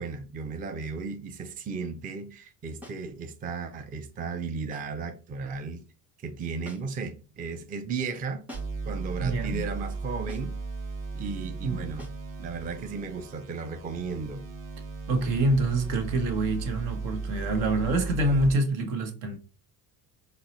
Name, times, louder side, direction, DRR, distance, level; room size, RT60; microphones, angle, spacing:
voice 1, 0.0-5.8 6.2-8.4 8.9-10.6 11.1-12.1 12.4-14.4, right 4 dB, 20° right, 0.4 m, -35 dB
sound 1, 2.8-3.1 4.7-5.0 6.6-7.1 8.5-8.9 10.3-10.6 12.0-12.3, equal, 5° right, 0.8 m, -47 dB
sound 2, 8.5-18.5, right 4 dB, 40° right, 1.0 m, -36 dB
voice 2, 9.2-9.7 11.6-11.8 15.1-19.4, right 2 dB, 75° right, 0.9 m, -26 dB
3.8 x 2.0 x 2.8 m
hypercardioid pair, 70°, 47 cm